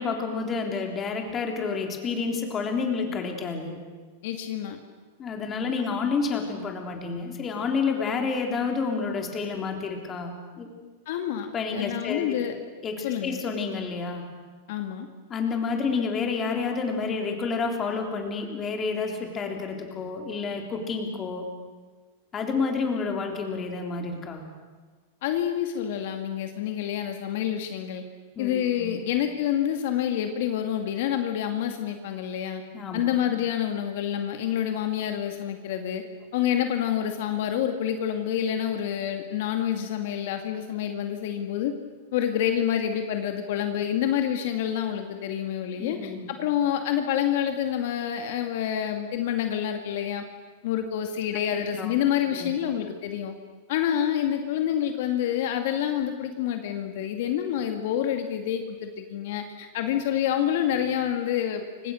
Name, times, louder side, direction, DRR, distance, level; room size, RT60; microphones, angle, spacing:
voice 1, 0.0-3.8 5.2-10.7 11.5-12.4 12.8-14.2 15.3-21.4 22.3-24.5 28.3-29.0 32.7-33.0 45.8-46.3 51.7-51.9 52.4-52.5, left 4 dB, 20° left, 3 dB, 3.5 m, -29 dB
voice 2, 4.2-4.8 11.1-11.5 11.7-12.6 13.0-13.4 14.7-15.1 25.2-28.0 28.4-32.6 32.9-36.0 36.3-41.7 42.1-50.2 50.6-53.3 53.7-61.9, left 10 dB, 55° left, 5 dB, 2.3 m, -27 dB
30.0 x 25.5 x 6.5 m, 1.4 s
supercardioid pair, 170°, 0 cm